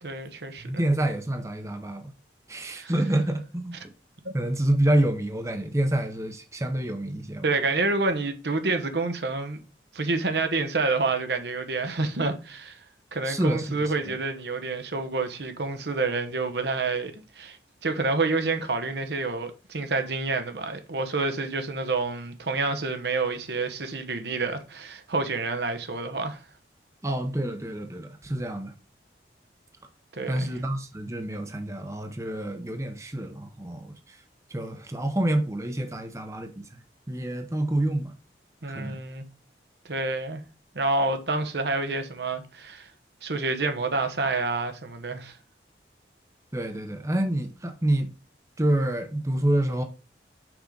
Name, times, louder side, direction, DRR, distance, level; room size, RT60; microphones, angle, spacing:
voice 1, 0.0-0.7 2.7-2.9 4.2-4.3 7.4-9.6 9.9-12.8 13.1-17.6 17.8-26.4 30.2-30.5 38.6-39.2 39.9-40.4 40.7-42.9 43.2-45.4, right 3 dB, 70° right, 1.0 m, -28 dB
voice 2, 0.6-2.1 2.5-3.8 4.3-7.5 13.2-14.1 27.0-28.7 30.3-34.2 34.5-38.1 38.7-39.0 46.5-48.1 48.6-49.8, right 1 dB, 15° right, 0.7 m, -27 dB
6.1 x 5.0 x 3.9 m
head